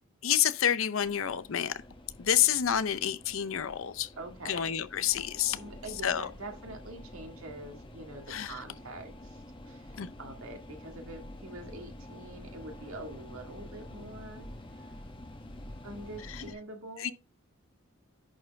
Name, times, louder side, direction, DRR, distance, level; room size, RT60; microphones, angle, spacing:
voice 1, 0.2-1.8 2.2-4.1 4.5-5.6 6.0-6.3 8.3-8.5 10.0-10.1 16.3-16.4 17.0-17.1, left 10 dB, 70° left, 0.6 m, -28 dB
sound 1, 1.0-16.5, left 1 dB, 25° left, 1.1 m, -48 dB
voice 2, 4.2-4.7 5.5-15.0 15.8-17.1, right 2 dB, 85° right, 1.9 m, -45 dB
10.5 x 4.5 x 3.5 m
head